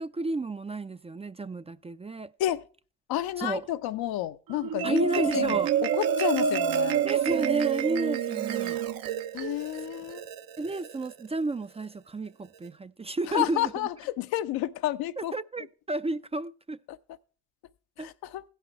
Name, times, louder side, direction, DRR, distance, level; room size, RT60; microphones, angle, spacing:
voice 1, 0.0-2.3 3.4-3.6 4.8-5.7 7.0-8.8 10.6-13.7 15.2-16.8 18.0-18.1, right 2 dB, 15° right, 0.5 m, -31 dB
voice 2, 3.1-7.0 9.3-10.2 13.3-15.3 16.9-17.0 18.0-18.4, left 13 dB, 70° left, 0.8 m, -30 dB
Marimba xylophone, 4.5-11.1, right 8 dB, 65° right, 0.9 m, -28 dB
16.0 x 5.7 x 4.4 m
hypercardioid pair, 50°, 38 cm